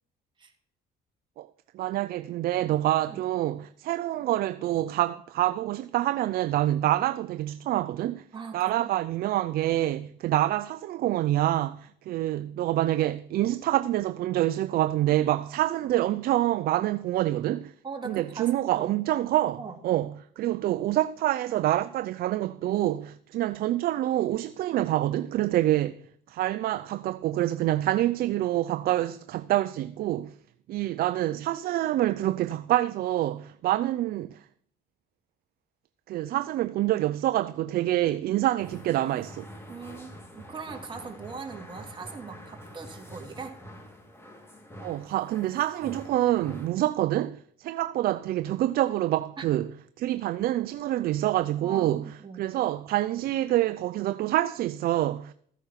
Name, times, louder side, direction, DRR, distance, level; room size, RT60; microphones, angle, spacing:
voice 1, 1.7-8.2 8.5-17.7 18.0-26.0 26.3-30.3 30.7-34.4 36.1-39.5 44.8-49.7 50.0-52.0 52.3-55.3, right 14 dB, 65° right, 0.5 m, -26 dB
voice 2, 8.3-8.9 17.8-19.0 19.6-19.8 39.7-43.6 49.4-49.5 51.6-52.5, right 5 dB, 30° right, 2.3 m, -40 dB
sound 1, 38.6-46.7, equal, 15° left, 2.3 m, -46 dB
14.5 x 8.2 x 5.8 m
cardioid pair, 110°, 17 cm